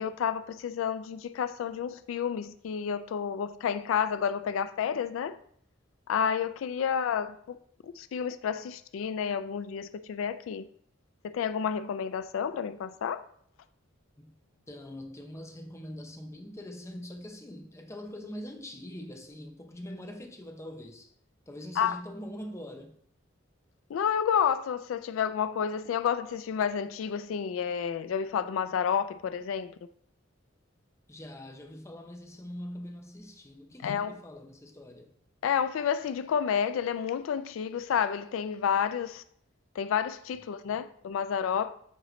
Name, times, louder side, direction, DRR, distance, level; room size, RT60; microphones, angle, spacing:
voice 1, 0.0-5.4 6.1-7.6 7.8-10.7 11.3-13.2 21.8-22.0 23.9-29.7 33.8-34.1 35.4-39.2 39.8-41.7, left 7 dB, 90° left, 0.3 m, -30 dB
voice 2, 14.7-21.1 21.5-23.0 31.1-35.1, left 1 dB, 15° left, 0.6 m, -43 dB
7.9 x 3.1 x 3.8 m
head